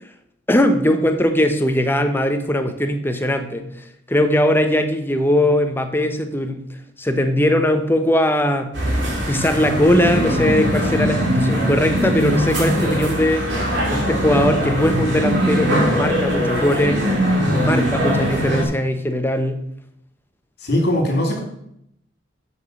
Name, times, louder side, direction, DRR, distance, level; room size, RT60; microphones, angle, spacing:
voice 1, 0.5-3.6 4.1-6.6 7.0-8.7 9.3-13.5 13.9-17.1 17.6-19.6, left 1 dB, 10° left, 7 dB, 0.9 m, -19 dB
sound 1, 8.7-18.6, equal, 75° right, 3.6 m, -21 dB
voice 2, 20.6-21.4, left 1 dB, 60° left, 1 dB, 3.2 m, -20 dB
7.7 x 7.0 x 7.2 m, 0.75 s
head